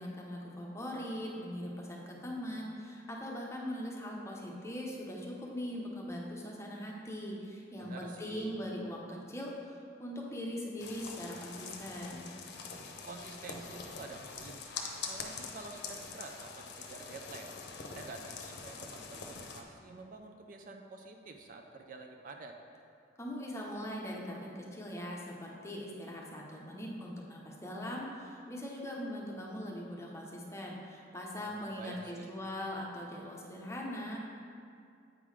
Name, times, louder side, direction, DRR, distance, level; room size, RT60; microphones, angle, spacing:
voice 1, 0.0-12.3 23.2-34.2, equal, 15° left, -2 dB, 0.8 m, -41 dB
voice 2, 7.8-8.5 13.1-14.7 15.1-17.5 17.9-22.6 31.4-32.3, right 3 dB, 45° right, 4 dB, 0.4 m, -48 dB
sound 1, 10.8-19.6, left 5 dB, 60° left, 0.7 m, -44 dB
8.3 x 3.8 x 4.8 m, 2.4 s
head